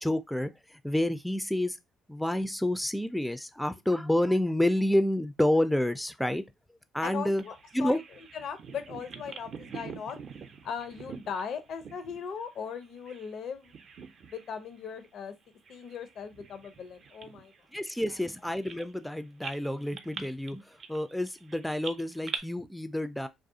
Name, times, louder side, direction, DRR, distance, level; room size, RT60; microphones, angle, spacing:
voice 1, 0.0-1.8 2.1-6.4 6.9-7.4 7.7-8.0 17.7-20.6 20.9-23.3, left 1 dB, 5° left, 0.3 m, -29 dB
voice 2, 7.0-8.0 8.3-10.2 10.6-13.8 14.2-15.3 15.7-17.5 18.1-18.2, left 6 dB, 65° left, 0.5 m, -38 dB
Bird vocalization bird call bird song, 7.4-13.3 13.6-14.5 14.8-15.0 15.6-19.1 19.4-22.4, right 5 dB, 55° right, 0.5 m, -44 dB
2.4 x 2.3 x 2.6 m
hypercardioid pair, 55°, 0 cm